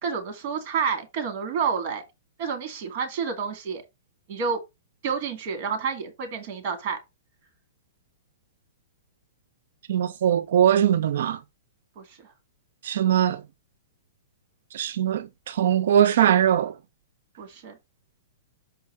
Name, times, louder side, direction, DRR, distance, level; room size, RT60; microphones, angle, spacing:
voice 1, 0.0-2.0 2.4-3.8 4.3-4.6 5.0-7.0 12.0-12.2 17.4-17.8, right 6 dB, 35° right, 2.3 m, -29 dB
voice 2, 9.9-11.4 12.8-13.4 14.7-16.7, right 10 dB, 60° right, 0.5 m, -21 dB
6.2 x 4.5 x 4.8 m
hypercardioid pair, 170°, 0 cm